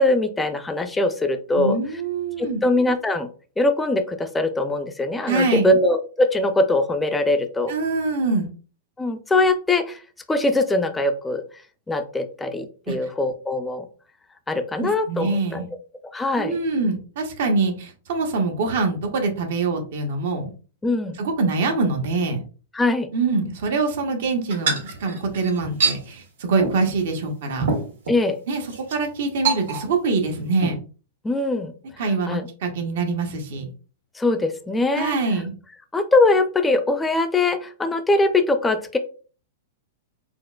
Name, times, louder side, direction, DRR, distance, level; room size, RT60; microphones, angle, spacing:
voice 1, 0.0-1.8 2.4-3.3 3.6-7.7 9.0-10.0 10.3-11.4 11.9-13.9 14.5-15.7 16.1-16.6 20.8-21.2 22.8-23.1 28.1-28.4 31.2-31.7 32.3-32.5 34.2-35.1 35.9-39.0, left 2 dB, 5° left, 6 dB, 0.3 m, -22 dB
voice 2, 1.6-2.6 5.3-5.7 7.7-8.5 12.9-13.0 14.8-15.7 16.4-20.5 21.1-22.4 23.1-27.7 28.5-30.8 32.0-33.6 34.9-35.5, right 3 dB, 65° right, 4 dB, 0.8 m, -24 dB
sound 1, 24.5-26.0 26.6-26.8 27.2-27.3 27.6-28.2 28.7-29.0 29.4-30.1 30.4-30.7, right 4 dB, 90° right, 1.7 m, -25 dB
4.3 x 2.4 x 2.2 m, 0.38 s
supercardioid pair, 160°, 0 cm